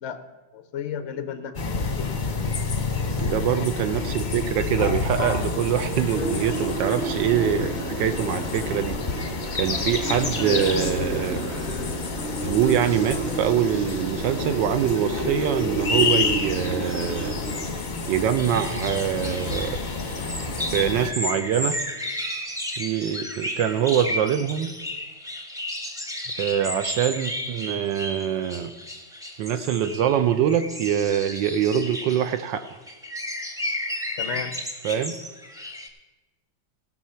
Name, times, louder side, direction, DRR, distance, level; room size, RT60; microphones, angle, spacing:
voice 1, 0.5-2.1 3.5-3.7 3.9-4.1 34.2-34.5, left 8 dB, 75° left, 10 dB, 0.6 m, -34 dB
sound 1, 1.5-21.1, left 4 dB, 35° left, 0.7 m, -29 dB
voice 2, 3.2-11.5 12.4-17.3 17.7-19.8 20.7-21.8 22.8-24.7 26.4-28.7 29.4-32.8 34.8-35.1, right 9 dB, 75° right, 10 dB, 1.2 m, -24 dB
sound 2, 6.1-17.7, right 3 dB, 35° right, 1.4 m, -32 dB
sound 3, 18.4-35.9, left 1 dB, 5° right, 0.5 m, -33 dB
16.5 x 6.2 x 5.6 m, 1.1 s
omnidirectional pair, 2.2 m